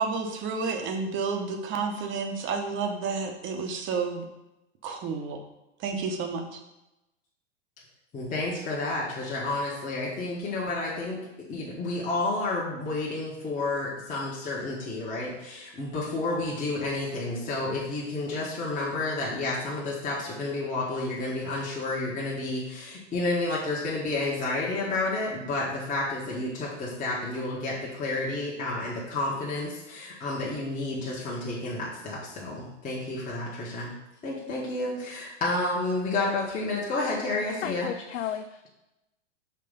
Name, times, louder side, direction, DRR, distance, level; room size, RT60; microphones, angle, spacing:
voice 1, 0.0-4.2 4.8-5.5 5.8-6.6, right 4 dB, 30° right, 4 dB, 0.9 m, -30 dB
voice 2, 8.1-33.9 34.2-37.9, left 2 dB, 20° left, -6 dB, 1.3 m, -30 dB
voice 3, 37.6-38.7, left 10 dB, 80° left, 7 dB, 0.5 m, -33 dB
5.8 x 3.3 x 5.1 m, 0.93 s
hypercardioid pair, 110°, 36 cm